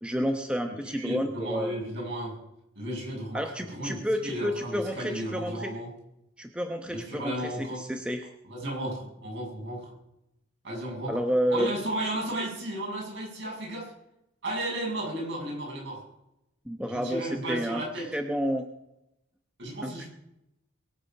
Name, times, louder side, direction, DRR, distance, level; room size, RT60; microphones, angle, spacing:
voice 1, 0.0-1.8 3.3-5.7 6.4-8.3 11.1-11.7 16.7-17.8 18.1-18.7 19.8-20.1, equal, 5° right, 5 dB, 0.9 m, -30 dB
voice 2, 0.7-2.4 2.7-5.9 6.9-7.8 8.4-9.9 10.6-11.2 11.5-13.9 14.4-16.1 16.9-18.2 19.6-20.1, right 1 dB, 60° right, -2 dB, 6.8 m, -34 dB
22.5 x 8.3 x 5.9 m, 0.84 s
head